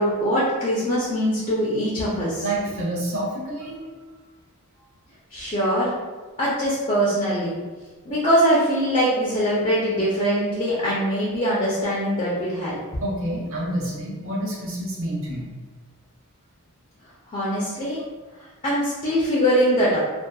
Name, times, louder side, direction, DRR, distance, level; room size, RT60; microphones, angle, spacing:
voice 1, 0.0-2.4 5.3-5.9 6.4-7.6 8.1-12.8 17.3-18.0 18.6-20.0, equal, 25° left, -7 dB, 0.4 m, -22 dB
voice 2, 2.4-3.9 13.0-15.5, right 1 dB, 60° right, -5 dB, 0.7 m, -28 dB
2.6 x 2.1 x 2.2 m, 1.3 s
head